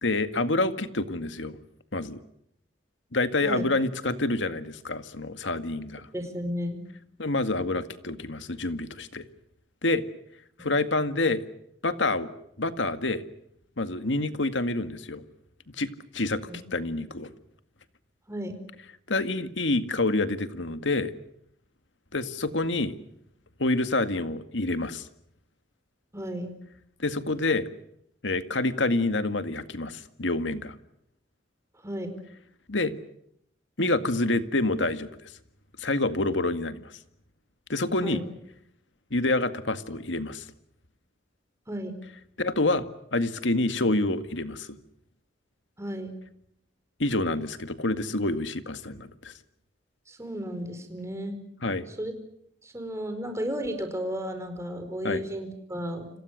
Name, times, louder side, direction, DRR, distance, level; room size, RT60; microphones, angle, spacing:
voice 1, 0.0-1.6 1.9-2.2 3.1-6.1 7.2-9.2 9.8-10.0 10.6-11.4 11.8-12.3 12.6-13.2 13.8-15.2 15.8-17.3 19.1-21.1 22.1-23.0 23.6-25.1 27.0-27.7 28.2-30.7 32.7-32.9 33.8-35.3 35.8-36.9 37.7-38.2 39.1-40.4 42.4-42.8 43.1-44.8 47.0-49.3 51.6-51.8 55.0-55.2, left 2 dB, 85° left, 10 dB, 2.0 m, -27 dB
voice 2, 6.1-6.8 10.6-10.7 16.5-16.6 18.3-18.6 26.1-26.5 31.8-32.2 38.0-38.2 41.7-42.0 45.8-46.1 50.1-51.4 52.0-52.1 52.6-56.1, equal, 15° right, 7 dB, 4.7 m, -33 dB
30.0 x 26.5 x 6.5 m, 0.74 s
head